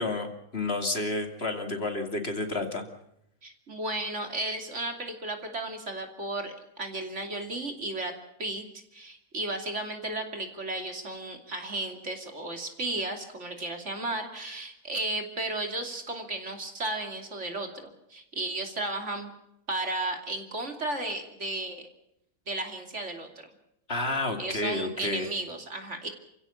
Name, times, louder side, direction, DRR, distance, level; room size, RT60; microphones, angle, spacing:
voice 1, 0.0-2.8 23.9-25.3, left 2 dB, 45° left, 5 dB, 2.8 m, -30 dB
voice 2, 3.4-8.1 8.4-8.6 8.9-19.3 19.7-21.8 22.5-23.5 24.4-26.1, right 2 dB, 50° right, 4 dB, 3.2 m, -34 dB
28.5 x 16.0 x 7.1 m, 0.81 s
omnidirectional pair, 1.5 m